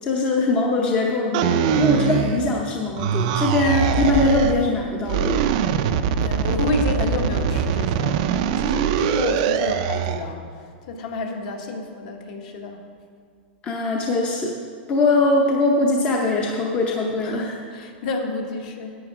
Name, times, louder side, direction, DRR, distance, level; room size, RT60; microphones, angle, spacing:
voice 1, 0.0-5.4 13.6-14.5 14.9-17.6, left 2 dB, 20° left, 0 dB, 0.7 m, -21 dB
sound 1, 1.3-2.6 3.0-4.6 5.1-10.2, right 8 dB, 40° right, 0.4 m, -22 dB
voice 2, 5.7-12.9 17.2-19.0, left 3 dB, 45° left, 3 dB, 1.2 m, -30 dB
11.0 x 8.5 x 4.8 m, 2.1 s
supercardioid pair, 170°, 6 cm